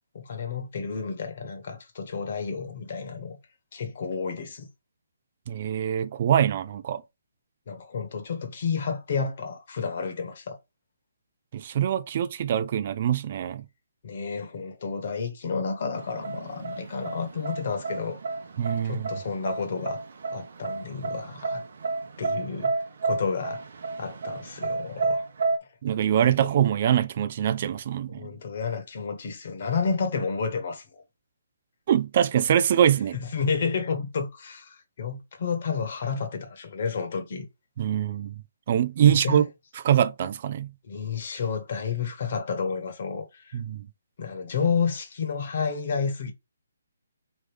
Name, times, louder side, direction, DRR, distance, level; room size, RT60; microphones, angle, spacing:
voice 1, 0.1-3.4 3.7-4.7 7.7-10.6 14.0-18.2 18.8-20.0 20.3-21.6 22.2-22.7 23.0-23.6 24.0-25.2 26.2-26.4 28.1-31.0 33.3-37.5 39.1-39.4 40.8-43.6 44.2-46.3, left 5 dB, 50° left, 1.2 m, -31 dB
voice 2, 5.5-7.0 11.5-13.6 18.6-19.1 25.8-28.3 31.9-33.2 37.8-38.4 38.7-39.5 39.8-40.7 43.5-43.9, right 9 dB, 40° right, 0.3 m, -24 dB
sound 1, 16.0-25.6, right 3 dB, 60° right, 0.8 m, -31 dB
3.9 x 3.2 x 3.2 m
hypercardioid pair, 165°, 0 cm